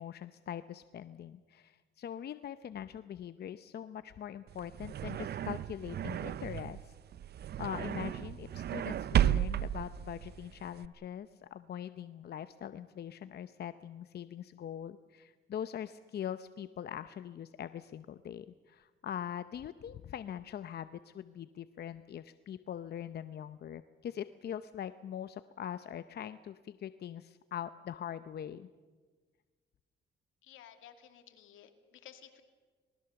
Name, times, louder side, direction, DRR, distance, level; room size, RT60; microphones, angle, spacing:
voice 1, 0.0-6.9 7.6-28.7, left 9 dB, 55° left, 12 dB, 0.7 m, -42 dB
sound 1, 4.5-10.9, right 10 dB, 55° right, 0.6 m, -34 dB
voice 2, 30.4-32.4, left 10 dB, 85° left, 7 dB, 2.3 m, -55 dB
26.0 x 19.5 x 7.0 m, 1.4 s
cardioid pair, 90°, 20 cm